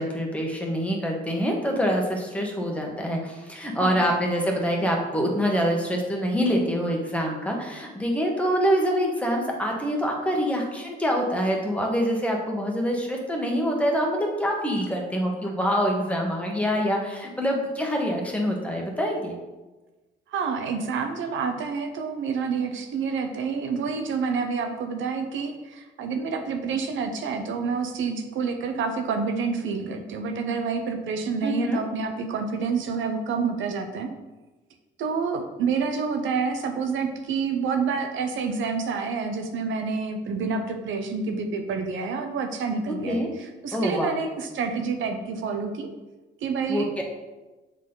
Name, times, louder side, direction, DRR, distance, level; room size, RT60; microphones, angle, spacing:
voice 1, 0.0-19.3 31.4-31.8 42.9-43.3 43.7-44.2 46.7-47.0, equal, 5° left, 0 dB, 1.4 m, -25 dB
voice 2, 3.8-4.1 20.3-34.1 35.0-45.9 46.4-46.9, right 5 dB, 75° right, 6 dB, 0.9 m, -28 dB
7.2 x 4.2 x 3.9 m, 1.2 s
cardioid pair, 90°, 20 cm